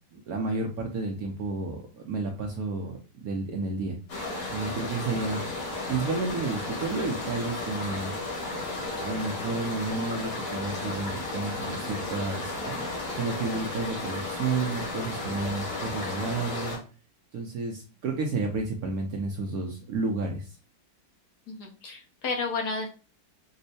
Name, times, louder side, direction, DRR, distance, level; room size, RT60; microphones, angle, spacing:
voice 1, 0.1-4.0 4.5-5.4 5.9-8.1 9.0-12.9 13.2-16.8 17.3-20.5, right 3 dB, 70° right, 1 dB, 0.9 m, -31 dB
sound 1, 4.1-16.8, left 2 dB, 90° left, 2.3 m, -34 dB
voice 2, 21.5-22.9, left 4 dB, 65° left, 1 dB, 1.3 m, -32 dB
5.3 x 2.1 x 2.6 m, 0.34 s
omnidirectional pair, 2.0 m